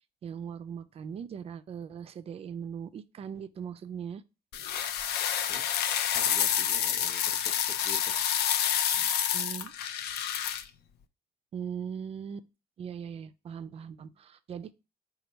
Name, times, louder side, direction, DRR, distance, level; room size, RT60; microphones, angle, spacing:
voice 1, 0.2-4.2 9.3-9.7 11.5-12.4 12.8-14.7, right 7 dB, 35° right, 0.3 m, -39 dB
sound 1, 4.5-10.6, left 9 dB, 75° left, 0.4 m, -28 dB
voice 2, 6.1-8.1 8.9-9.1, left 1 dB, 5° left, 0.7 m, -47 dB
4.3 x 2.2 x 4.1 m
cardioid pair, 110°, 17 cm